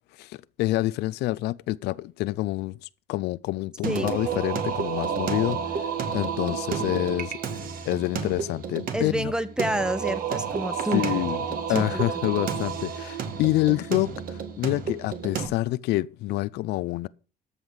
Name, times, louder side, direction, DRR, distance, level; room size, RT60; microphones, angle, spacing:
voice 1, 0.2-9.3 10.9-11.4 11.7-17.1, left 18 dB, 80° left, 0.5 m, -27 dB
Singing, 3.8-15.5, right 6 dB, 55° right, 1.7 m, -30 dB
voice 2, 8.9-11.0 11.7-12.0, right 1 dB, 5° right, 1.0 m, -28 dB
13.5 x 5.6 x 6.5 m
cardioid pair, 110°, 17 cm